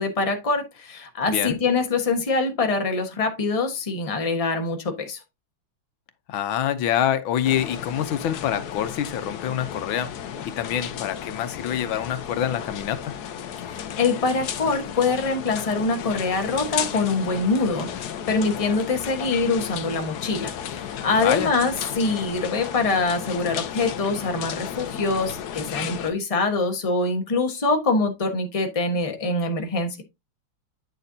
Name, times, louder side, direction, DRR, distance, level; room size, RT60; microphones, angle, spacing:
voice 1, 0.0-5.2 13.7-30.0, left 3 dB, 20° left, 1.1 m, -24 dB
voice 2, 1.3-1.6 6.3-10.1 10.4-13.1 21.2-21.5, left 10 dB, 85° left, 1.6 m, -26 dB
sound 1, 7.4-26.1, left 9 dB, 65° left, 1.2 m, -34 dB
9.1 x 6.6 x 2.7 m
omnidirectional pair, 2.1 m